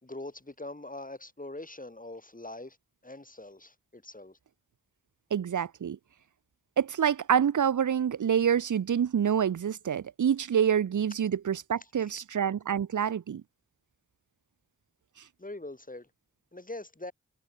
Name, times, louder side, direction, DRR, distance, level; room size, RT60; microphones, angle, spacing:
voice 1, 0.0-2.8 3.0-4.4 12.0-12.2 15.4-16.1 16.5-17.1, left 2 dB, 25° left, 4.2 m, -43 dB
voice 2, 5.3-6.0 6.8-13.4, right 8 dB, 80° right, 0.7 m, -27 dB
cardioid pair, 45°, 30 cm